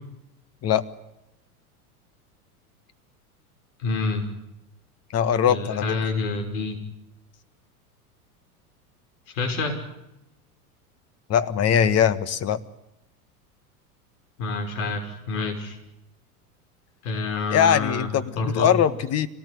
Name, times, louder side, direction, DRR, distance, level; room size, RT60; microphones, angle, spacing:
voice 1, 3.8-4.2 5.5-6.8 9.3-9.8 14.4-15.8 17.0-18.1 18.4-18.7, left 3 dB, 65° left, 5 dB, 5.9 m, -27 dB
voice 2, 5.1-6.0 11.3-12.6 17.5-19.3, left 8 dB, 35° left, 14 dB, 1.6 m, -21 dB
25.0 x 18.5 x 9.7 m, 0.89 s
hypercardioid pair, 95°, 44 cm